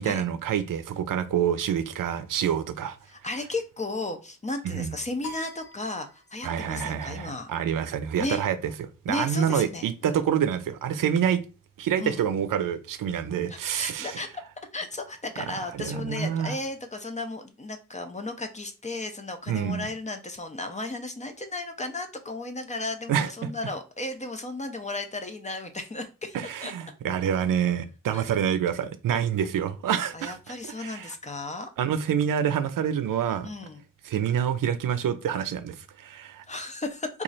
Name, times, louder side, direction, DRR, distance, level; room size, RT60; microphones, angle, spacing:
voice 1, 0.0-3.0 4.6-5.0 6.4-8.7 9.0-11.4 11.8-14.2 15.5-16.5 19.5-19.9 23.1-23.3 26.3-31.1 31.8-33.5 34.0-36.4, right 8 dB, 80° right, 0.5 m, -27 dB
voice 2, 3.1-7.5 8.2-8.4 9.1-10.2 12.0-12.2 13.5-14.4 14.7-26.4 26.6-26.7 28.1-28.3 30.1-31.7 33.4-33.8 36.5-37.1, left 2 dB, 25° left, 0.4 m, -34 dB
sound 1, 5.2-6.7, left 2 dB, 75° left, 1.2 m, -43 dB
3.0 x 2.4 x 3.9 m
wide cardioid pair, 155°, 32 cm